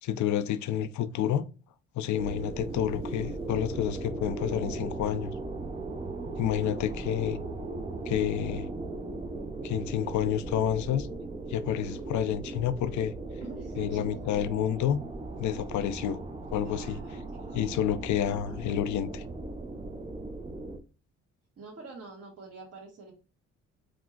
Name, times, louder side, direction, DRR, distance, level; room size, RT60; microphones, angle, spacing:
voice 1, 0.0-1.5 2.0-5.3 6.4-7.4 8.1-8.7 9.6-11.1 11.5-13.1 13.8-15.0 15.4-16.2 16.5-17.0 17.5-19.2, left 10 dB, 70° left, 0.5 m, -29 dB
sound 1, 2.2-20.8, right 2 dB, 20° right, 0.6 m, -38 dB
voice 2, 13.4-14.5 16.6-17.6 21.6-23.1, right 2 dB, 50° right, 1.4 m, -45 dB
4.9 x 2.0 x 3.7 m
cardioid pair, 90°, 30 cm